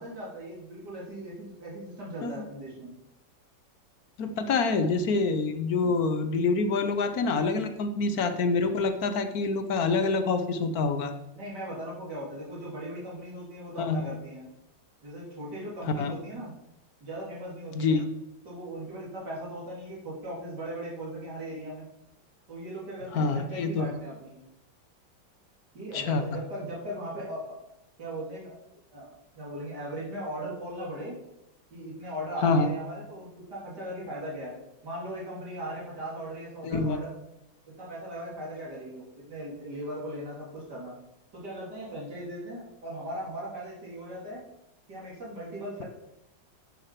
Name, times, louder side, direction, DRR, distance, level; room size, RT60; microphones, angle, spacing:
voice 1, 0.0-2.9 5.8-6.0 11.3-14.5 15.0-16.5 17.0-18.0 18.4-21.9 22.5-24.4 25.7-27.4 28.0-28.6 28.9-31.2 31.7-34.5 34.8-37.1 37.8-41.0 41.3-44.4 44.9-45.8, right 1 dB, 65° right, -5 dB, 3.7 m, -38 dB
voice 2, 4.2-11.1 13.8-14.0 16.0-16.1 17.7-18.0 23.1-23.9 25.9-26.2 32.4-32.7 36.6-37.0, left 4 dB, 60° left, 8 dB, 1.3 m, -26 dB
9.5 x 6.2 x 6.0 m, 0.88 s
omnidirectional pair, 2.0 m